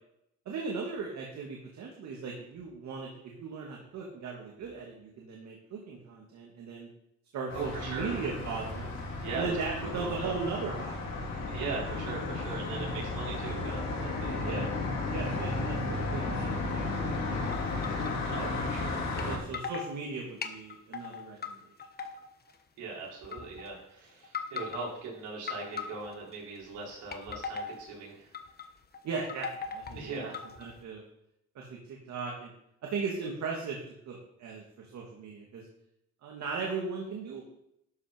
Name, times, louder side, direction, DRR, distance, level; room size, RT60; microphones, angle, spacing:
voice 1, 0.5-6.9 7.3-9.0 9.3-11.4 14.4-14.7 15.1-17.5 19.2-21.6 29.0-30.3 30.6-31.0 31.5-32.5 32.8-33.8 34.1-35.7 36.2-37.4, right 4 dB, 70° right, -1 dB, 2.3 m, -38 dB
sound 1, 7.5-19.4, left 2 dB, 65° left, 3.7 m, -34 dB
voice 2, 7.5-8.1 9.2-9.6 9.8-10.3 11.5-14.7 18.3-19.4 22.8-28.4 29.9-30.4, right 4 dB, 85° right, -3 dB, 4.2 m, -40 dB
sound 2, 17.5-18.3 19.2-19.3 19.5-19.9 20.4-21.5 21.8-22.6 23.2-23.7 24.2-24.9 25.5-26.3 26.9-27.8 28.3-28.7 28.9-30.8, left 6 dB, 35° left, 1.3 m, -39 dB
12.5 x 5.7 x 5.3 m, 0.78 s
cardioid pair, 100°, 29 cm